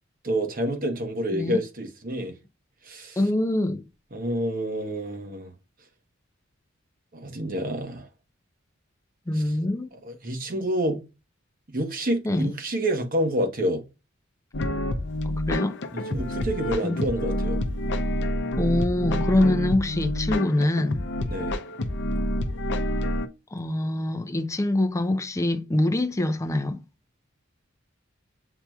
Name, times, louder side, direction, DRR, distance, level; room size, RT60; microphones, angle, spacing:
voice 1, 0.2-2.3 2.8-3.2 4.1-5.5 7.1-8.1 10.0-11.0 11.7-13.8 15.9-17.6 21.3-21.5, equal, 45° right, 1.1 m, -28 dB
voice 2, 1.3-1.6 3.2-3.8 9.3-9.9 12.2-12.5 15.2-15.8 16.8-17.0 18.6-21.0 23.5-26.8, left 1 dB, 15° left, 0.5 m, -24 dB
sound 1, 14.5-23.3, left 1 dB, 60° left, 0.6 m, -28 dB
8.0 x 2.9 x 2.3 m
head